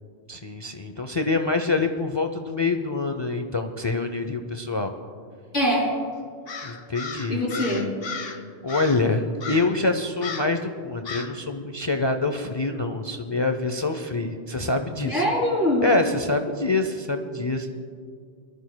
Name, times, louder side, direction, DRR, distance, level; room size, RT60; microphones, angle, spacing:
voice 1, 0.3-4.9 6.6-7.9 8.2-15.2 15.8-17.7, left 3 dB, 35° left, 6 dB, 0.5 m, -26 dB
voice 2, 5.5-5.9 7.3-7.9 15.0-15.9, equal, 80° left, -4 dB, 3.4 m, -23 dB
Crow, 6.5-8.4 8.7-9.1 9.4-9.8 10.2-10.6 11.1-11.4, left 5 dB, 65° left, 1.1 m, -35 dB
23.0 x 13.0 x 2.2 m, 2.2 s
omnidirectional pair, 1.1 m